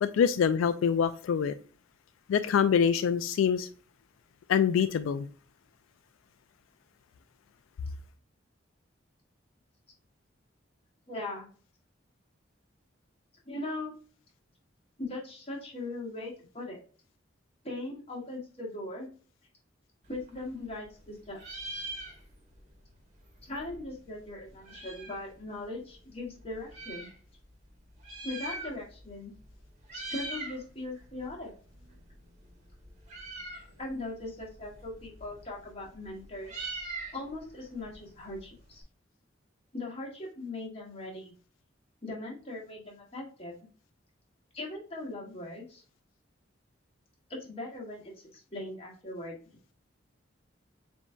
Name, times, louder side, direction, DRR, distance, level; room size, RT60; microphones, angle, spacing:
voice 1, 0.0-1.5 2.3-3.7 4.5-5.3, left 7 dB, 90° left, 0.3 m, -25 dB
voice 2, 11.1-11.5 13.5-13.9 15.0-16.8 17.6-19.1 20.1-21.6 23.4-27.1 28.2-29.3 29.9-31.5 33.8-36.6 37.1-38.8 39.7-41.3 42.0-43.5 44.5-45.8 47.3-49.4, left 2 dB, 30° left, 1.4 m, -39 dB
Meow, 20.1-21.1 21.3-22.6 22.9-23.0 23.2-25.3 25.9-27.1 27.9-29.1 29.3-29.6 29.8-30.6 31.0-38.8, right 2 dB, 35° right, 1.3 m, -42 dB
7.2 x 2.7 x 2.2 m
head